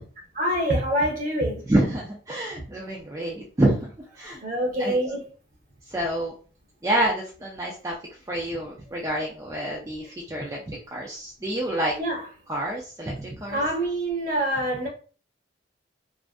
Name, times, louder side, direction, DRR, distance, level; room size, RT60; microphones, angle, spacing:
voice 1, 0.3-1.6 4.4-5.2 12.0-12.2 13.5-14.9, right 1 dB, 45° right, 0.7 m, -25 dB
voice 2, 1.7-4.4 4.8-4.9 5.9-6.3 6.8-7.9 8.3-11.9 12.5-13.6, right 1 dB, 15° right, 0.4 m, -27 dB
2.5 x 2.4 x 2.2 m
head